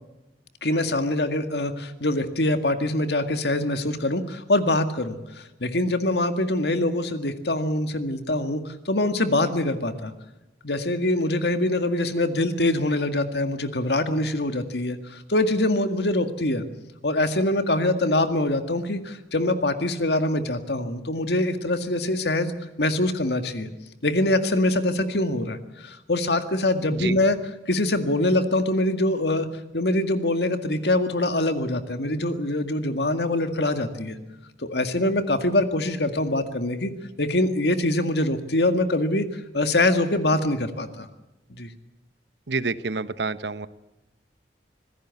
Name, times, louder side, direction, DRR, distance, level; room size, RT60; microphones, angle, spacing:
voice 1, 0.6-10.1 10.6-16.6 17.0-23.7 24.0-27.4 27.7-29.5 29.7-34.2 34.6-36.9 37.2-39.2 39.5-41.1 41.5-41.7, left 1 dB, 70° left, 8 dB, 2.0 m, -24 dB
voice 2, 42.5-43.7, right 4 dB, 75° right, 14 dB, 1.0 m, -28 dB
25.5 x 16.5 x 8.4 m, 1.0 s
head